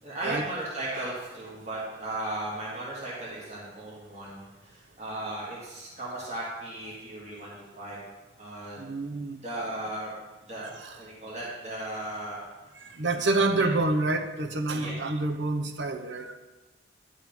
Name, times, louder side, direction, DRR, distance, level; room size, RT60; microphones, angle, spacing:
voice 1, 0.0-8.0 8.4-8.8 9.4-10.1 10.5-10.7 10.9-12.4 13.1-13.2 13.5-13.7 14.7-15.0, right 1 dB, 35° right, -6 dB, 2.2 m, -36 dB
voice 2, 8.8-9.4 10.6-11.0 12.8-16.3, right 2 dB, 70° right, 6 dB, 0.9 m, -28 dB
10.5 x 5.2 x 5.3 m, 1.2 s
head